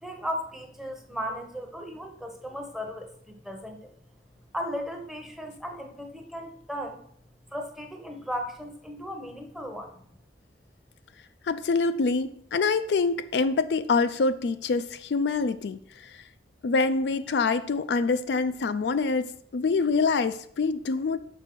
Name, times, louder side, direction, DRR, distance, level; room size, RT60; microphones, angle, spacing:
voice 1, 0.0-3.9 4.5-7.0 7.5-10.0, equal, ahead, 3 dB, 0.8 m, -36 dB
voice 2, 11.4-16.2 16.6-21.2, left 4 dB, 70° left, 11 dB, 0.4 m, -25 dB
6.0 x 4.4 x 5.9 m, 0.65 s
head